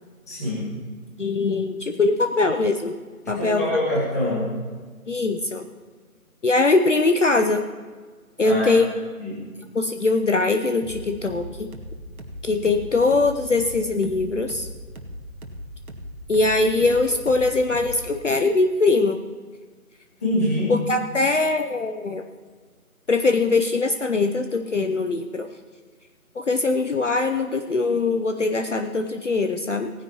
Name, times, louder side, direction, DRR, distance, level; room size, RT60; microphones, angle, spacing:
voice 1, 0.3-0.7 3.4-4.5 8.4-8.7 9.2-9.4 20.2-20.7, left 1 dB, 10° left, -6 dB, 1.7 m, -24 dB
voice 2, 1.2-2.9 3.3-3.6 5.1-5.7 6.4-7.7 8.4-8.9 9.7-11.7 12.4-14.7 16.3-19.2 20.7-22.2 23.1-25.5 26.4-29.9, left 3 dB, 55° left, 6 dB, 0.8 m, -22 dB
sound 1, 10.8-18.2, equal, 70° right, 1.9 m, -39 dB
18.5 x 10.0 x 3.0 m, 1.5 s
figure-of-eight pair, 165°, 44 cm